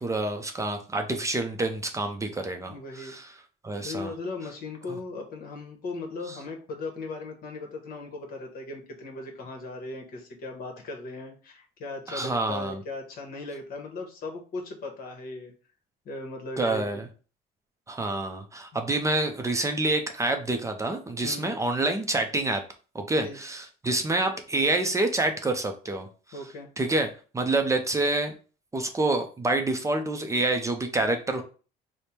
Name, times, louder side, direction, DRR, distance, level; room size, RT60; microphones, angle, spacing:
voice 1, 0.0-3.2 3.6-4.1 12.1-12.8 16.6-17.0 17.9-22.6 22.9-26.1 26.8-27.1 27.3-28.3 28.7-31.4, right 2 dB, 20° right, 5 dB, 0.5 m, -27 dB
voice 2, 2.7-3.1 3.8-15.5 16.0-17.1 21.2-21.6 23.2-23.4 26.3-26.7, left 3 dB, 60° left, 3 dB, 1.1 m, -38 dB
3.3 x 2.1 x 4.3 m, 0.37 s
cardioid pair, 110°, 17 cm